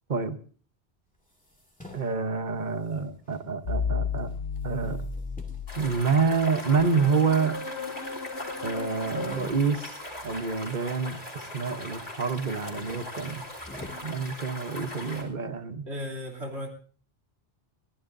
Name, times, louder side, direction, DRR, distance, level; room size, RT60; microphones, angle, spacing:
sound 1, 1.2-3.8 4.2-6.7 7.3-8.0 8.2-8.3 8.6-11.2 11.6-12.0 12.4-14.9, left 1 dB, 5° left, 2.2 m, -49 dB
voice 1, 1.9-4.3 4.6-5.0 5.7-7.6 8.6-10.0 10.2-13.4 14.0-15.9, right 5 dB, 45° right, 9 dB, 1.2 m, -27 dB
sound 2, 3.6-9.4, left 5 dB, 85° left, 1.3 m, -34 dB
sound 3, 5.7-15.2, left 1 dB, 45° left, 3.6 m, -40 dB
voice 2, 15.9-16.7, left 1 dB, 85° right, 0 dB, 3.4 m, -35 dB
21.5 x 16.0 x 2.7 m, 0.43 s
omnidirectional pair, 1.1 m